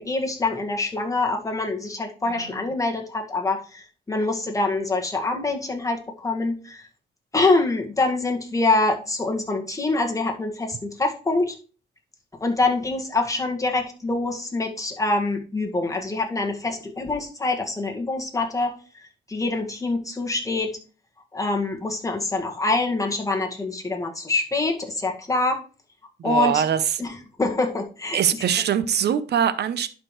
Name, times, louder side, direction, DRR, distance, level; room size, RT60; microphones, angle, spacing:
voice 1, 0.0-6.8 7.3-11.5 12.4-18.7 19.3-20.7 21.3-25.6 26.2-26.6 27.0-28.2, left 3 dB, 15° left, 1.8 m, -25 dB
voice 2, 2.3-2.6 26.2-26.8 28.1-29.9, right 9 dB, 60° right, 0.8 m, -23 dB
11.0 x 5.0 x 3.2 m
cardioid pair, 100°, 19 cm